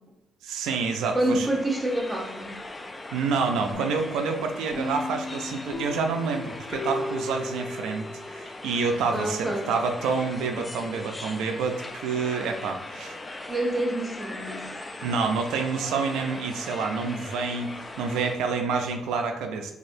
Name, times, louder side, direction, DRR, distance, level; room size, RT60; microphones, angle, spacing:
voice 1, 0.4-1.5 3.1-13.2 15.0-19.7, right 5 dB, 90° right, 4 dB, 0.3 m, -28 dB
sound 1, 0.7-18.4, left 2 dB, 25° left, 0.4 m, -40 dB
voice 2, 1.1-2.5 9.1-9.7 13.5-14.6, right 1 dB, 15° right, 1 dB, 0.8 m, -27 dB
sound 2, 3.7-8.4, left 2 dB, 40° left, 1.3 m, -35 dB
4.1 x 2.8 x 2.6 m, 0.90 s
cardioid pair, 90°, 0 cm